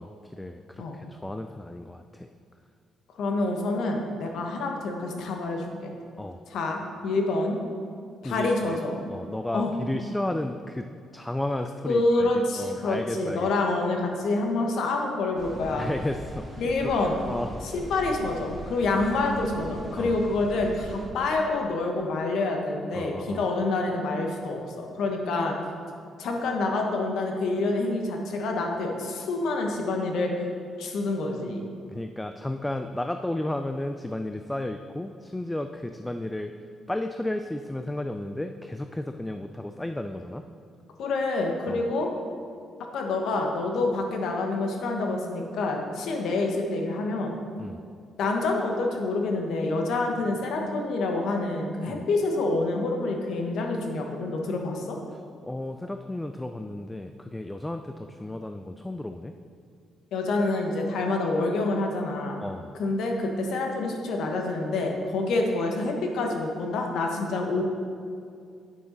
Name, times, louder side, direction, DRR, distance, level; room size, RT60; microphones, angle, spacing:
voice 1, 0.0-2.3 6.2-6.4 8.2-8.8 9.1-13.5 15.7-16.9 17.3-17.6 18.9-19.0 20.0-20.2 22.9-23.5 31.9-36.5 36.9-40.4 41.7-41.9 47.6-47.9 51.9-52.0 55.1-59.3 62.4-62.8, left 1 dB, 10° left, 7 dB, 0.3 m, -33 dB
voice 2, 3.2-5.9 6.5-7.6 8.2-8.9 9.5-9.7 11.8-15.9 16.6-17.2 17.7-25.5 26.2-30.5 30.8-31.7 41.0-42.1 42.9-47.3 48.2-55.0 60.1-62.4 62.8-67.6, left 2 dB, 75° left, 2 dB, 1.1 m, -27 dB
sound 1, 15.4-21.1, right 1 dB, 25° right, 1.7 m, -40 dB
8.8 x 6.7 x 4.0 m, 2.3 s
cardioid pair, 90°, 0 cm